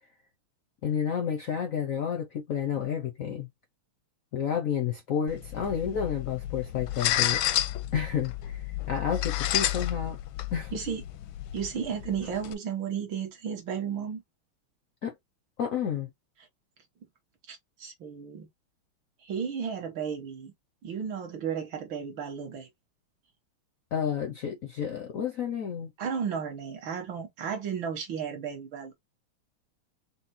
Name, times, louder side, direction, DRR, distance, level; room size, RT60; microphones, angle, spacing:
voice 1, 0.8-3.5 4.3-7.4 7.9-10.2 10.5-10.7 15.0-15.1 15.6-16.1 23.9-25.9, left 8 dB, 70° left, 0.8 m, -30 dB
sound 1, 5.3-12.5, left 13 dB, 85° left, 1.4 m, -31 dB
voice 2, 10.7-11.0 11.5-14.2 17.5-18.5 19.2-20.5 20.8-22.7 26.0-28.9, right 7 dB, 70° right, 2.1 m, -33 dB
5.2 x 2.0 x 4.2 m
omnidirectional pair, 2.2 m